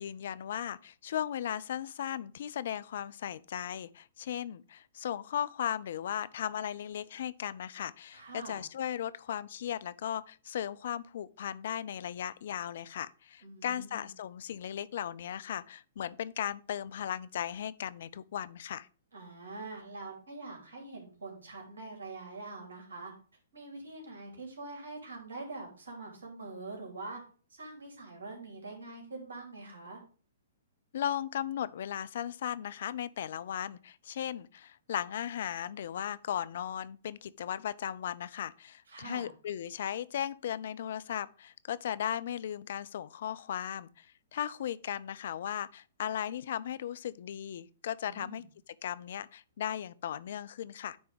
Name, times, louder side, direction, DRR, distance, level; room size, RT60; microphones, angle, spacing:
voice 1, 0.0-18.9 30.9-44.1 44.3-51.0, left 10 dB, 60° left, 0.4 m, -37 dB
voice 2, 8.1-8.6 13.4-14.1 19.1-23.1 23.5-27.2 27.5-30.0 38.9-39.3 48.0-48.4, right 3 dB, 70° right, 2.9 m, -44 dB
9.4 x 3.4 x 5.0 m
figure-of-eight pair, 115°, 0 cm